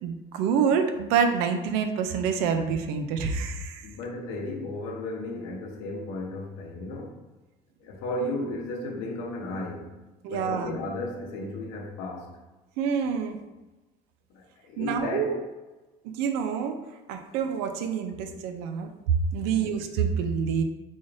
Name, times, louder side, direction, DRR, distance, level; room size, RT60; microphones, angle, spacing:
voice 1, 0.0-3.9 10.2-10.8 12.8-13.4 14.8-15.4 16.0-20.6, right 6 dB, 80° right, 7 dB, 0.5 m, -27 dB
voice 2, 3.8-7.2 7.8-9.9 10.3-12.3 14.3-15.3 19.6-19.7, left 2 dB, 85° left, 1 dB, 0.8 m, -34 dB
3.9 x 3.2 x 2.5 m, 1.1 s
cardioid pair, 155°, 16 cm